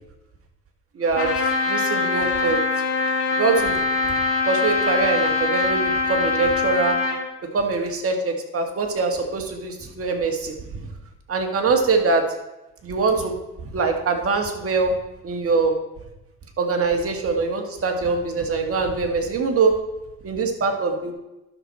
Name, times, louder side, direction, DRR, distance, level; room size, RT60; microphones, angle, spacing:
voice 1, 1.0-1.3 1.7-2.6 3.3-4.2 4.5-7.0 7.5-10.6 11.3-12.2 12.8-13.3 13.6-14.9 15.2-15.8 16.6-19.8 20.2-21.1, right 4 dB, 50° right, 3 dB, 1.8 m, -23 dB
Trumpet, 1.2-7.2, left 3 dB, 50° left, 2.0 m, -23 dB
11.5 x 6.2 x 4.3 m, 0.97 s
cardioid pair, 90°, 30 cm